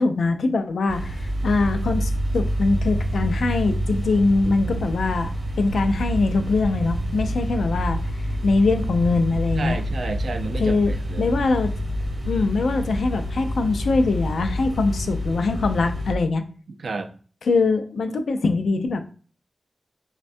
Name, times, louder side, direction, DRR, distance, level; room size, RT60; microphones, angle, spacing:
voice 1, 0.0-5.3 5.6-8.0 8.4-9.8 10.6-10.9 11.2-11.7 12.3-16.4 17.5-19.0, left 3 dB, 85° left, 7 dB, 0.3 m, -22 dB
sound 1, 0.9-16.1, equal, 40° right, 0.8 m, -27 dB
voice 2, 9.6-11.4 16.8-17.1, right 3 dB, 70° right, 7 dB, 0.3 m, -31 dB
3.4 x 2.1 x 2.5 m, 0.40 s
wide cardioid pair, 130°, 0 cm